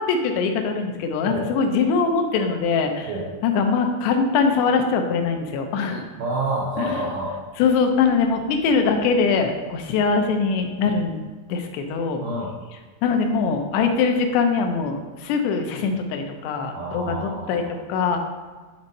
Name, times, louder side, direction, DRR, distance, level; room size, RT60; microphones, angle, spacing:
voice 1, 0.0-3.1 3.4-6.1 6.8-7.0 7.6-12.2 13.0-17.6 17.9-18.2, left 5 dB, 90° left, 4 dB, 2.9 m, -22 dB
voice 2, 6.2-7.4 12.2-12.5 16.7-17.7, right 2 dB, 85° right, -5 dB, 1.8 m, -28 dB
10.5 x 4.1 x 2.6 m, 1.4 s
omnidirectional pair, 4.7 m